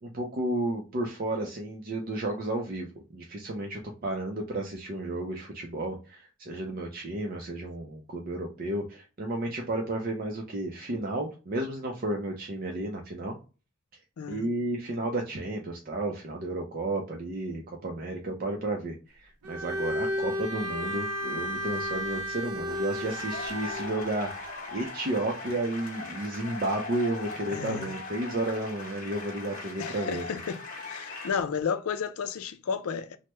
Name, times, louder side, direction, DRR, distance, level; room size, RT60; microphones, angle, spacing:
voice 1, 0.0-2.9 3.1-13.4 14.3-30.2, right 1 dB, 40° right, 0.5 m, -32 dB
voice 2, 14.2-14.5 27.5-28.0 29.8-30.6 30.9-33.2, left 6 dB, 80° left, 0.4 m, -32 dB
Bowed string instrument, 19.4-23.9, equal, 90° right, 0.6 m, -33 dB
sound 1, 22.4-31.3, left 3 dB, 40° left, 0.9 m, -40 dB
3.3 x 2.1 x 2.9 m
head